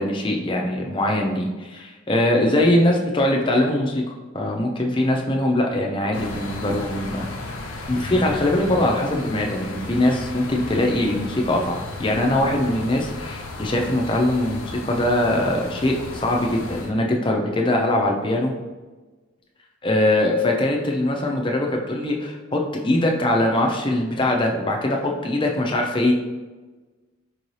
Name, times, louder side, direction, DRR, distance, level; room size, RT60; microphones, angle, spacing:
voice 1, 0.0-7.3 7.9-18.5 19.8-26.1, left 1 dB, 25° left, 1 dB, 0.5 m, -22 dB
sound 1, 6.1-16.9, left 2 dB, 85° left, 0.6 m, -35 dB
4.6 x 2.7 x 3.1 m, 1.2 s
head